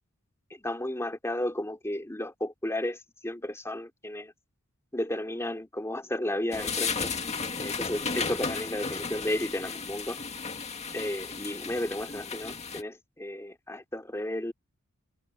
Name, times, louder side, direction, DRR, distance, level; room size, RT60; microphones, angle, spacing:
voice 1, 0.5-4.3 4.9-7.1 7.6-10.2 10.9-14.5, left 1 dB, 10° left, 2.7 m, -33 dB
sound 1, 6.5-12.8, left 5 dB, 30° left, 2.0 m, -34 dB
head